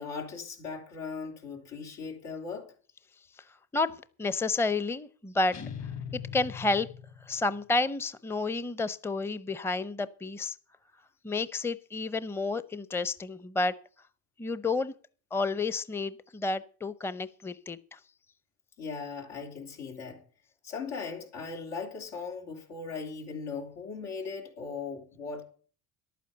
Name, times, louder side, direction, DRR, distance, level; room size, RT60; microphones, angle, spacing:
voice 1, 0.0-2.7 18.8-20.2 20.6-25.4, left 5 dB, 85° left, 3.7 m, -38 dB
voice 2, 4.2-5.6 6.1-6.9 7.3-10.6 11.2-13.7 14.4-14.9 15.3-18.0, left 3 dB, 5° left, 0.6 m, -30 dB
sound 1, 5.5-7.6, left 7 dB, 40° left, 1.5 m, -40 dB
11.5 x 9.3 x 6.8 m
supercardioid pair, 75°, 41 cm